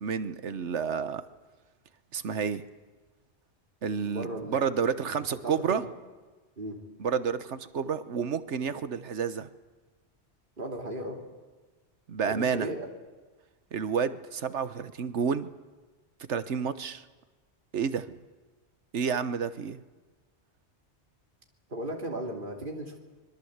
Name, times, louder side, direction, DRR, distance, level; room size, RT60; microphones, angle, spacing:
voice 1, 0.0-1.2 2.1-2.6 3.8-5.8 7.0-9.5 12.1-12.7 13.7-15.5 16.3-17.0 17.7-18.2 18.9-19.8, right 6 dB, 90° right, 13 dB, 1.4 m, -30 dB
voice 2, 4.0-4.7 5.1-5.2 5.4-5.9 6.6-6.8 10.6-11.2 12.2-12.9 21.7-23.0, right 1 dB, 50° right, 1 dB, 3.2 m, -36 dB
25.5 x 22.0 x 8.1 m, 1.3 s
omnidirectional pair, 1.2 m